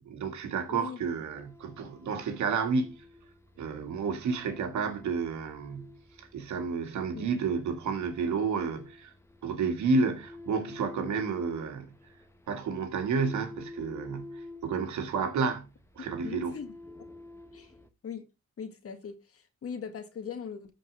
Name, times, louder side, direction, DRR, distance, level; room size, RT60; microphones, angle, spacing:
voice 1, 0.0-3.0 3.6-9.1 9.4-12.0 12.5-16.6, right 5 dB, 70° right, 2.0 m, -31 dB
voice 2, 0.7-1.0 7.1-7.3 16.2-16.8 17.5-17.7 18.0-18.3 18.6-20.7, left 6 dB, 50° left, 1.8 m, -40 dB
sound 1, 1.3-17.9, left 2 dB, 10° left, 1.3 m, -49 dB
13.5 x 4.7 x 3.4 m
cardioid pair, 90°, 30 cm